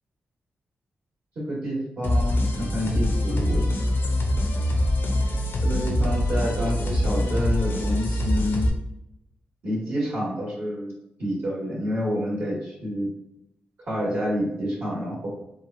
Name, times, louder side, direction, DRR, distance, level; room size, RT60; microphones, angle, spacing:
voice 1, 1.3-3.6 5.6-8.7 9.6-10.9 11.2-13.1 13.8-15.3, equal, 65° right, -6 dB, 1.3 m, -28 dB
sound 1, 2.0-8.7, left 1 dB, 75° left, 0.5 m, -24 dB
3.3 x 2.2 x 2.5 m, 0.83 s
cardioid pair, 70°, 4 cm